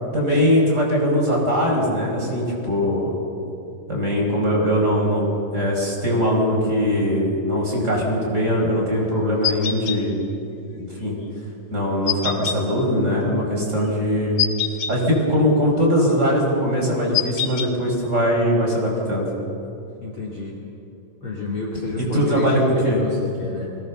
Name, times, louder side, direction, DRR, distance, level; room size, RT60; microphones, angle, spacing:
voice 1, 0.1-3.2 3.9-5.2 5.5-10.2 10.8-11.2 11.7-14.4 14.9-19.3 22.1-23.0, equal, 20° right, -3 dB, 5.4 m, -21 dB
sound 1, 9.4-10.0 12.1-12.6 14.4-14.9 17.1-17.7, left 10 dB, 65° left, 1.2 m, -24 dB
voice 2, 20.0-20.6 21.2-23.7, left 2 dB, 40° left, -3 dB, 3.0 m, -30 dB
22.5 x 19.0 x 7.0 m, 2.7 s
omnidirectional pair, 4.1 m